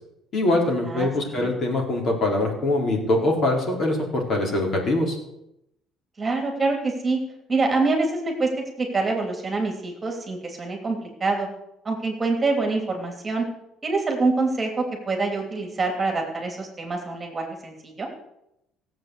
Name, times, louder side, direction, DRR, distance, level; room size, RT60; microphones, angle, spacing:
voice 1, 0.3-5.2, left 2 dB, 40° left, 0 dB, 4.2 m, -23 dB
voice 2, 0.9-1.5 6.2-7.2 7.5-8.5 8.8-11.5 11.8-13.5 13.8-18.1, right 3 dB, 20° right, 2 dB, 2.9 m, -25 dB
16.0 x 7.9 x 8.2 m, 0.82 s
cardioid pair, 140°, 0 cm